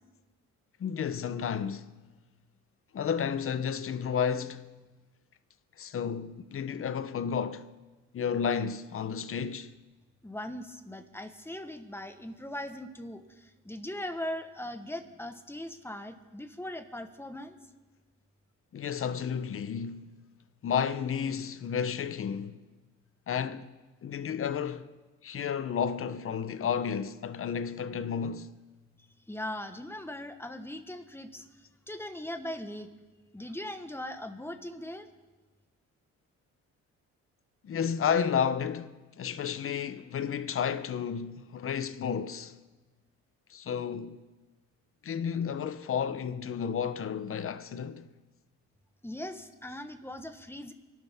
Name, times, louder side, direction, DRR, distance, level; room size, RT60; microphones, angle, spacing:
voice 1, 0.8-1.9 2.9-4.7 5.8-7.7 8.1-9.7 18.7-20.1 20.6-22.7 23.3-23.7 24.0-24.9 25.2-28.5 37.6-42.6 43.5-44.2 45.0-48.1, left 7 dB, 45° left, 0.8 m, -32 dB
voice 2, 10.2-17.6 29.3-32.9 33.3-35.1 49.0-50.7, left 1 dB, 10° left, 1.3 m, -40 dB
25.5 x 12.0 x 3.6 m
cardioid pair, 90°, 30 cm